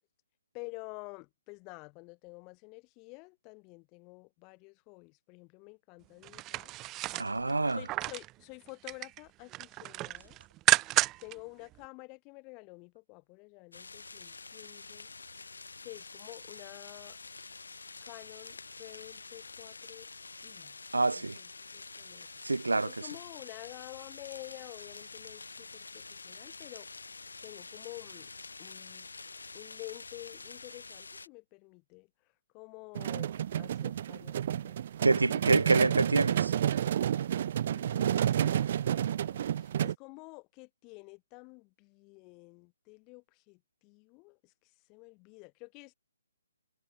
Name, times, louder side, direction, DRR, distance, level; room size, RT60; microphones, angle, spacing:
voice 1, 0.5-6.7 7.7-10.4 11.2-15.1 15.8-17.2 18.0-20.1 20.4-20.8 21.1-26.9 27.4-28.3 28.6-29.1 29.5-32.1 32.5-34.8 37.7-44.5 44.9-45.9, left 30 dB, 25° left, 5.3 m, -50 dB
sound 1, 6.2-8.3 8.7-9.2 9.5-11.3 11.7-11.8, right 18 dB, 20° right, 1.0 m, -31 dB
voice 2, 7.2-7.8 20.9-21.4 22.4-22.9 35.0-36.5, right 3 dB, 90° right, 1.9 m, -26 dB
sound 2, 13.7-31.3, left 4 dB, 80° left, 5.9 m, -47 dB
sound 3, 32.9-39.9, right 10 dB, 45° right, 1.0 m, -30 dB
figure-of-eight pair, 145°, 0 cm